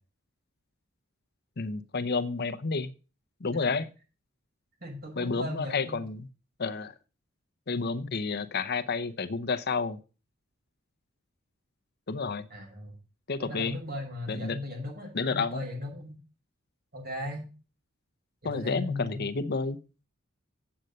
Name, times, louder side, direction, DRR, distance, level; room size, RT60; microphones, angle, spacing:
voice 1, 1.6-2.9 3.4-3.9 5.2-6.3 6.6-6.9 7.7-10.0 12.1-12.5 13.3-13.8 14.3-14.6 15.1-15.6 18.4-19.8, left 4 dB, 50° left, 13 dB, 0.8 m, -30 dB
voice 2, 4.8-6.0 12.5-12.9 13.4-16.2 16.9-17.4 18.4-19.2, left 1 dB, 50° right, 1 dB, 6.0 m, -37 dB
8.9 x 7.9 x 6.6 m, 0.34 s
head